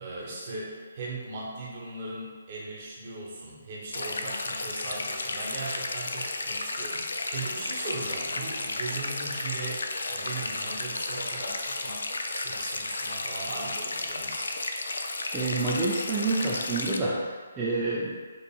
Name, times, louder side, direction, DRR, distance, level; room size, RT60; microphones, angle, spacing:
voice 1, 0.0-14.5, right 3 dB, 40° right, -5 dB, 0.9 m, -38 dB
sound 1, 3.9-17.0, left 2 dB, 70° left, 0.3 m, -33 dB
voice 2, 15.3-17.2 17.6-18.2, right 3 dB, 20° right, -8 dB, 0.4 m, -28 dB
4.5 x 2.4 x 2.3 m, 1.5 s
figure-of-eight pair, 145°, 0 cm